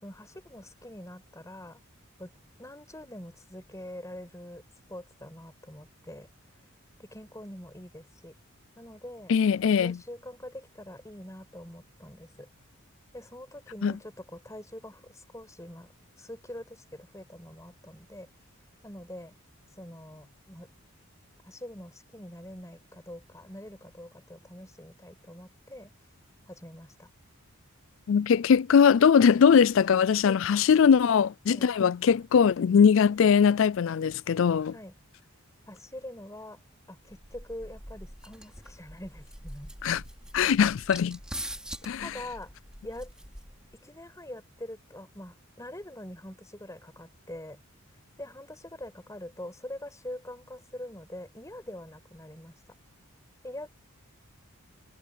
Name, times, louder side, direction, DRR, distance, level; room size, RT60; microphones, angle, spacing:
voice 1, 0.0-1.8 2.2-2.3 2.6-4.6 4.9-6.3 7.0-8.3 8.8-9.3 9.8-12.5 13.1-15.9 16.2-18.3 18.8-19.4 19.8-20.7 21.4-25.9 26.5-27.1 30.2-30.4 31.5-31.7 34.7-34.9 35.7-36.6 36.9-39.8 42.0-42.5 42.8-43.1 43.7-47.6 48.2-52.6 53.4-53.7, left 1 dB, 15° left, 5.3 m, -44 dB
voice 2, 9.3-10.0 13.8-13.9 28.1-34.7 39.8-40.0 40.3-41.2 41.8-42.1, left 7 dB, 60° left, 0.3 m, -21 dB
sound 1, 37.1-43.8, right 1 dB, 5° right, 4.3 m, -44 dB
head